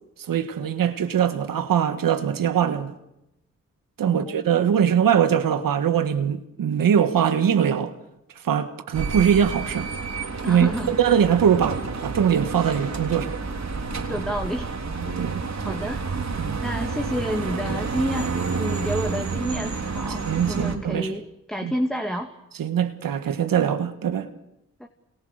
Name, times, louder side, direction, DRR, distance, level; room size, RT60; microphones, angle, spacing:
voice 1, 0.3-2.9 4.0-7.9 8.4-9.9 10.5-13.4 15.2-15.8 16.4-16.6 20.3-21.2 21.6-21.7 22.6-24.3, right 8 dB, 85° right, 1.5 m, -22 dB
voice 2, 4.0-4.4 10.4-11.0 14.1-14.8 15.3-16.2 16.6-22.3 24.8-24.9, equal, ahead, 2.3 m, -30 dB
sound 1, 8.9-20.8, right 4 dB, 55° right, 3.5 m, -30 dB
29.0 x 27.0 x 6.5 m
cardioid pair, 50°, 33 cm